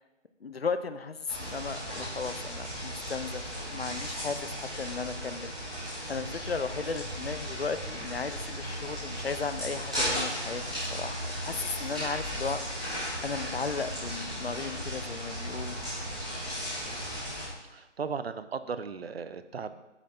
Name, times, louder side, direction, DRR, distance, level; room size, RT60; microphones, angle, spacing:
voice 1, 0.4-3.4 3.7-5.5 5.8-10.6 10.9-12.6 13.2-15.8, left 5 dB, 55° left, 11 dB, 0.6 m, -35 dB
sound 1, 1.3-17.4, equal, 5° right, 0.8 m, -36 dB
voice 2, 17.6-19.8, right 5 dB, 55° right, 12 dB, 0.6 m, -36 dB
8.2 x 7.3 x 4.4 m, 1.0 s
figure-of-eight pair, 165°, 37 cm